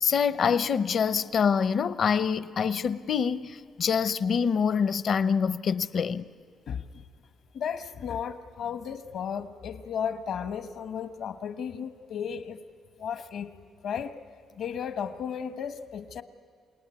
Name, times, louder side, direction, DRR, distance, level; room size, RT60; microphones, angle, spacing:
voice 1, 0.0-6.2, left 6 dB, 50° left, 0.7 m, -25 dB
voice 2, 6.7-7.0 7.5-12.6 13.0-13.6 13.8-14.2 14.6-16.2, left 7 dB, 70° left, 1.2 m, -34 dB
28.0 x 18.5 x 9.6 m
cardioid pair, 100°, 0 cm